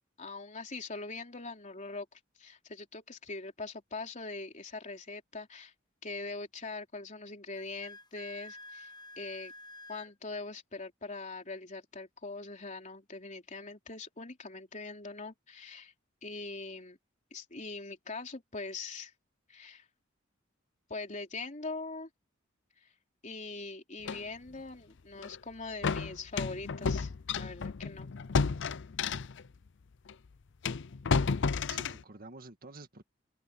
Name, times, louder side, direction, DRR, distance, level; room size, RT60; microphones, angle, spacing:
voice 1, 0.2-5.7 6.0-8.9 9.2-9.5 9.9-15.9 16.2-17.0 17.3-19.1 19.5-19.9 20.9-22.1 22.8-22.9 23.2-28.1, left 3 dB, 40° left, 3.5 m, -42 dB
Wind instrument woodwind instrument, 7.5-10.1, left 2 dB, 20° left, 0.8 m, -49 dB
sound 1, 24.1-24.2 25.2-25.4 25.8-29.5 30.1-30.2 30.6-32.0, left 5 dB, 65° left, 0.6 m, -32 dB
voice 2, 31.3-33.0, right 3 dB, 50° right, 1.9 m, -50 dB
head